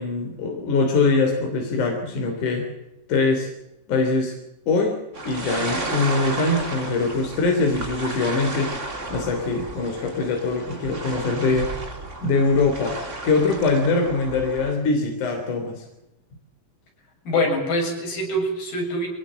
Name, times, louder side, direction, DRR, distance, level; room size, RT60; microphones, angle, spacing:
voice 1, 0.0-2.6 3.1-3.5 3.9-4.3 4.7-5.0 5.3-8.7 9.1-11.7 12.2-13.0 13.2-15.8, left 3 dB, 60° left, 2 dB, 4.8 m, -22 dB
sound 1, 5.1-14.7, right 2 dB, 20° right, 2.7 m, -33 dB
voice 2, 17.3-19.1, left 1 dB, 80° left, 1 dB, 8.9 m, -24 dB
24.0 x 20.0 x 7.7 m, 0.92 s
omnidirectional pair, 4.0 m